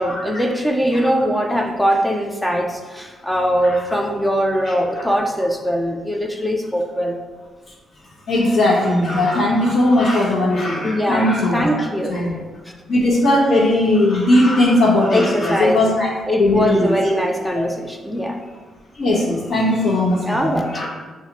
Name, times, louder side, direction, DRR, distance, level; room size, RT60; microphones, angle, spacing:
voice 1, 0.0-7.2 10.8-12.2 15.1-15.8 16.3-18.4 20.2-20.9, equal, 5° left, 3 dB, 0.3 m, -21 dB
voice 2, 8.3-11.7 12.1-12.3 12.9-16.1 16.4-16.9 19.0-20.9, left 1 dB, 55° left, -8 dB, 1.0 m, -18 dB
6.8 x 2.4 x 2.9 m, 1.4 s
cardioid pair, 165°, 0 cm